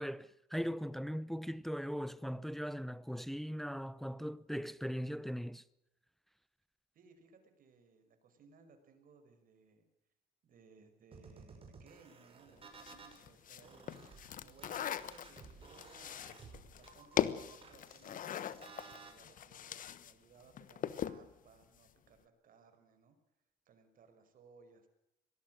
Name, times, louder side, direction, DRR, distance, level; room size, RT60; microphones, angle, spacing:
voice 1, 0.0-5.6, equal, ahead, 0.8 m, -39 dB
voice 2, 6.9-9.9 10.4-14.1 14.4-23.2 23.7-24.9, right 4 dB, 55° right, 5.7 m, -63 dB
sound 1, 11.1-13.2 13.6-19.1, right 5 dB, 35° right, 6.2 m, -56 dB
sound 2, 12.8-20.1 20.4-21.3, left 9 dB, 50° left, 1.3 m, -40 dB
24.5 x 19.0 x 6.5 m
cardioid pair, 110°, 17 cm